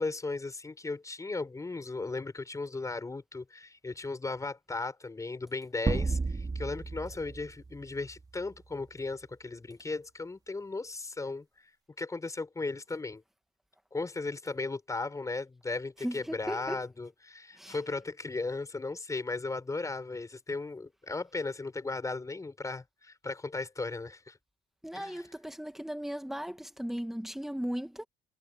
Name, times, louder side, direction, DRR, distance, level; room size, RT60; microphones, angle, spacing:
voice 1, 0.0-11.7 12.0-13.2 13.9-24.4 24.9-25.3, left 3 dB, 20° left, 6.3 m, -36 dB
sound 1, 5.9-8.4, right 4 dB, 20° right, 3.3 m, -33 dB
voice 2, 16.0-16.8 17.6-17.7 24.8-28.0, equal, ahead, 1.8 m, -37 dB
cardioid pair, 110°, 17 cm